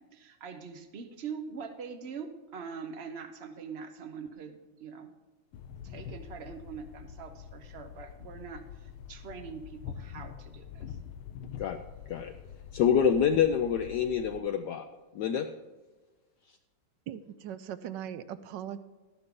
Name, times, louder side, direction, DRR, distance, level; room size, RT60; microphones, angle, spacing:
voice 1, 0.0-5.1 5.8-11.0, right 6 dB, 55° right, 8 dB, 0.7 m, -43 dB
sound 1, 5.5-14.4, left 8 dB, 90° left, 1.5 m, -45 dB
voice 2, 12.7-14.9 15.1-15.5, left 8 dB, 75° left, 7 dB, 1.0 m, -26 dB
voice 3, 17.1-18.8, right 10 dB, 75° right, 14 dB, 1.1 m, -39 dB
13.0 x 10.5 x 3.7 m, 1.2 s
omnidirectional pair, 2.2 m